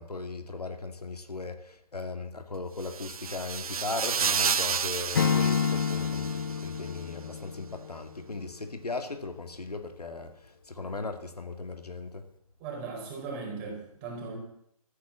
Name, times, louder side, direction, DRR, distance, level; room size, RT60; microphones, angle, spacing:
voice 1, 0.0-12.3, left 3 dB, 85° left, 2.2 m, -38 dB
sound 1, 2.8-6.7, right 6 dB, 70° right, 0.6 m, -31 dB
Acoustic guitar / Strum, 5.1-8.2, left 7 dB, 35° left, 0.5 m, -29 dB
voice 2, 12.6-14.4, right 4 dB, 20° right, 4.6 m, -38 dB
13.5 x 9.8 x 7.4 m
figure-of-eight pair, 155°, 19 cm